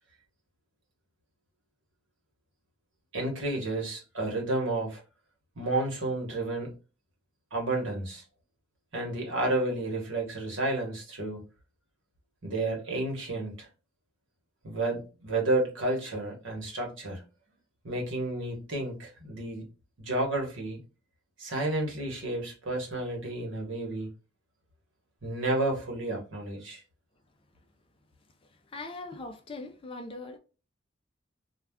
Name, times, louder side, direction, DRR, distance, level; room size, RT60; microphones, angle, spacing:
voice 1, 3.1-5.0 5.6-6.7 7.5-8.2 8.9-11.4 12.4-13.7 14.6-17.2 17.8-19.6 20.0-20.8 21.4-24.1 25.2-26.8, right 2 dB, 70° right, 1.0 m, -31 dB
voice 2, 28.4-30.4, left 2 dB, 30° left, 0.4 m, -41 dB
2.3 x 2.2 x 3.4 m
head